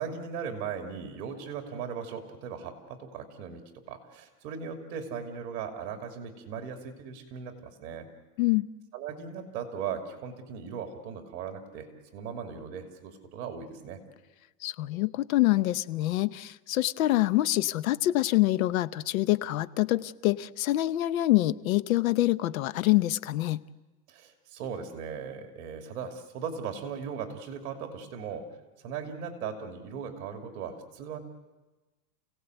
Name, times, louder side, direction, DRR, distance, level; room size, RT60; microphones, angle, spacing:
voice 1, 0.0-8.1 8.9-14.0 24.1-28.5 28.8-31.2, right 6 dB, 45° right, 5 dB, 2.8 m, -38 dB
voice 2, 14.6-23.6, left 16 dB, 60° left, 17 dB, 0.8 m, -26 dB
29.5 x 17.5 x 8.0 m, 1.2 s
supercardioid pair, 155°, 48 cm